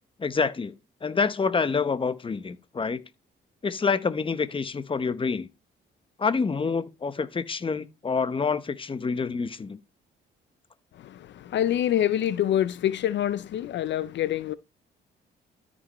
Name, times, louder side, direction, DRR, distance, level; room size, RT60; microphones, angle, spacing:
voice 1, 0.2-0.7 1.0-3.0 3.6-5.5 6.2-9.8, left 5 dB, 25° left, 0.9 m, -27 dB
voice 2, 11.0-14.5, left 11 dB, 65° left, 0.5 m, -26 dB
13.0 x 5.4 x 3.0 m
cardioid pair, 90°, 20 cm